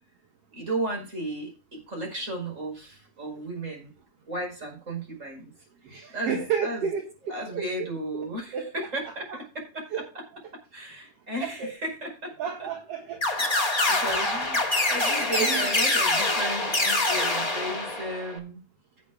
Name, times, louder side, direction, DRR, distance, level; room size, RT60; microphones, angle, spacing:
voice 1, 0.5-3.9 4.3-5.5 6.1-6.9 7.3-10.2 10.7-12.4 13.3-14.6 14.9-18.6, right 1 dB, 20° right, 2 dB, 5.3 m, -35 dB
voice 2, 5.8-7.9 8.1-8.3 8.5-8.7 9.3-9.4 9.9-10.0 11.4-11.7 12.4-13.2 14.2-14.6 14.9-15.0 15.4-15.7, right 7 dB, 50° right, 3 dB, 2.4 m, -32 dB
sound 1, 13.2-18.4, left 2 dB, 15° left, 1.5 m, -25 dB
17.5 x 8.4 x 2.3 m, 0.33 s
omnidirectional pair, 3.9 m